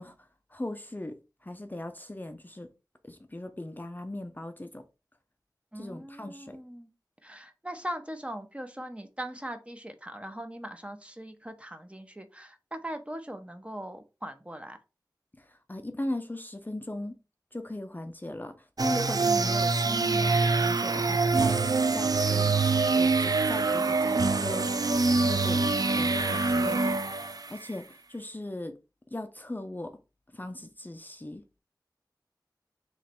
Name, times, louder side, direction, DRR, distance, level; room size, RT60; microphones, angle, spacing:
voice 1, 0.0-2.7 3.0-4.8 5.7-6.6 15.4-17.2 17.5-21.6 21.9-27.0 27.3-28.8 29.1-30.0 30.3-31.4, left 1 dB, 25° left, 0.5 m, -38 dB
voice 2, 5.7-6.9 7.2-14.8, right 1 dB, 15° right, 0.7 m, -40 dB
sound 1, 18.8-27.7, right 3 dB, 55° right, 0.4 m, -25 dB
3.2 x 3.0 x 4.2 m
wide cardioid pair, 45°, 8 cm